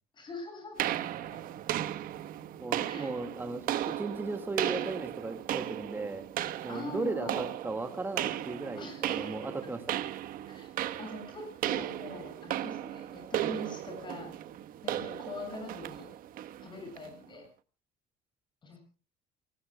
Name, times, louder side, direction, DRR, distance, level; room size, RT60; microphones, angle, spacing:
voice 1, 0.1-0.8 2.8-3.2 6.7-7.4 8.8-9.7 10.5-10.7 11.0-14.3 14.8-16.1 16.6-17.4 18.6-18.8, left 2 dB, 30° left, 5 dB, 7.3 m, -43 dB
sound 1, 0.8-17.1, right 12 dB, 60° right, 1.2 m, -36 dB
voice 2, 2.6-6.3 6.6-10.0 14.9-15.1, right 3 dB, 10° right, 8 dB, 1.9 m, -36 dB
29.0 x 19.5 x 2.2 m, 0.34 s
cardioid pair, 150°, 17 cm